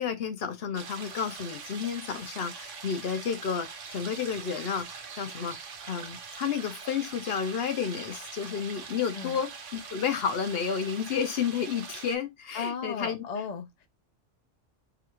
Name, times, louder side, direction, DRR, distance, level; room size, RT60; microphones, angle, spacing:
voice 1, 0.0-5.6 5.9-13.2, left 7 dB, 60° left, 1.0 m, -31 dB
sound 1, 0.7-12.2, right 5 dB, 80° right, 1.1 m, -43 dB
voice 2, 12.5-13.9, left 6 dB, 45° left, 0.7 m, -35 dB
4.9 x 2.3 x 3.1 m
omnidirectional pair, 1.2 m